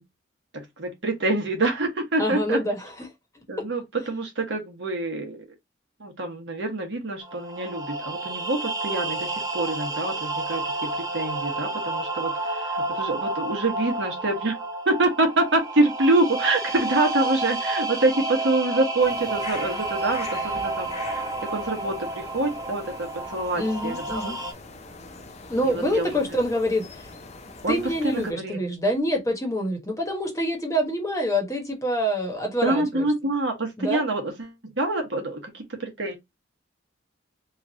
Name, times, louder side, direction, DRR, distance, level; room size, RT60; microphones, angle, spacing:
voice 1, 0.5-2.6 3.5-5.4 6.0-14.6 14.9-24.3 25.6-26.1 27.6-28.6 32.6-36.2, right 2 dB, 65° right, 1.1 m, -26 dB
voice 2, 2.2-3.1 3.3-3.4 23.6-24.4 25.5-27.1 27.7-33.1 33.8-34.0, equal, 15° left, 1.0 m, -26 dB
sound 1, 7.2-24.5, right 2 dB, 20° right, 0.5 m, -30 dB
sound 2, 19.0-28.3, left 3 dB, 35° left, 0.6 m, -42 dB
3.1 x 2.5 x 3.8 m
head